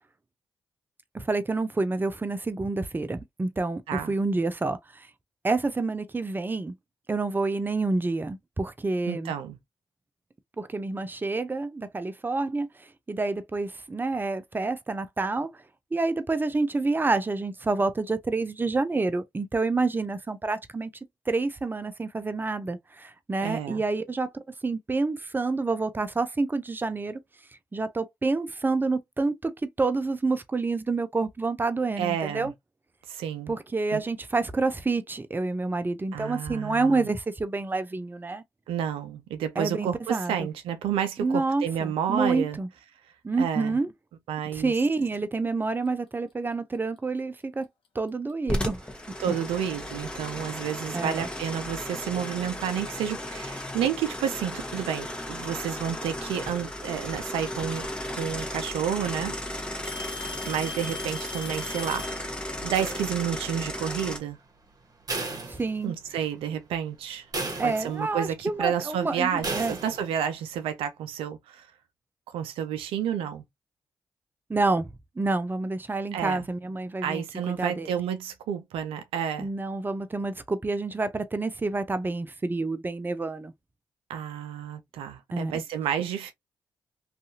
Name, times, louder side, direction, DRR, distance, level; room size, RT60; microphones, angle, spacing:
voice 1, 1.1-3.8 4.1-5.1 5.4-6.7 7.1-9.3 10.6-15.5 15.9-20.9 21.3-24.3 24.6-27.2 27.7-32.5 33.5-38.4 39.6-40.3 41.2-42.7 43.2-43.9 44.5-47.7 47.9-48.8 50.9-51.2 65.5-65.9 67.6-69.7 74.5-74.9 75.2-77.9 79.4-83.5 85.3-85.6, right 3 dB, 20° right, 0.6 m, -28 dB
voice 2, 9.1-9.6 23.4-23.8 32.0-32.5 33.1-33.5 33.9-34.0 36.1-37.1 38.7-42.6 43.4-43.8 44.3-44.7 49.2-57.9 58.2-59.4 60.5-62.3 62.6-64.4 65.8-67.3 67.6-71.7 72.3-73.4 76.1-76.4 77.0-79.5 84.1-86.3, right 9 dB, 80° right, 0.4 m, -30 dB
Alarm / Tick-tock, 48.3-48.5 49.4-49.5 50.3-50.4 52.1-52.2 53.4-53.5 54.7-55.2 56.9-57.0 58.3-58.4 58.7-59.2 59.8-62.3, left 4 dB, 70° left, 0.7 m, -40 dB
sound 1, 48.5-64.2, left 1 dB, 10° left, 1.0 m, -35 dB
sound 2, 62.7-63.6 65.1-66.2 66.6-66.7 67.3-68.2 69.4-70.2, right 3 dB, 40° right, 1.1 m, -35 dB
2.6 x 2.4 x 2.6 m
hypercardioid pair, 45°, 9 cm